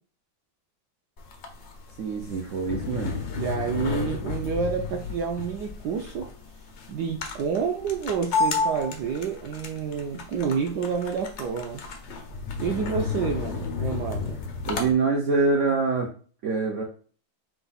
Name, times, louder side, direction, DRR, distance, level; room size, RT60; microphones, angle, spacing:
sound 1, 1.2-14.9, left 4 dB, 90° left, 0.6 m, -32 dB
voice 1, 2.0-3.2 14.7-16.1 16.4-16.8, right 4 dB, 90° right, 0 dB, 0.6 m, -25 dB
voice 2, 3.3-6.3 6.9-11.8 12.6-14.4, right 6 dB, 70° right, 2 dB, 1.1 m, -29 dB
4.8 x 2.4 x 4.0 m, 0.41 s
omnidirectional pair, 2.2 m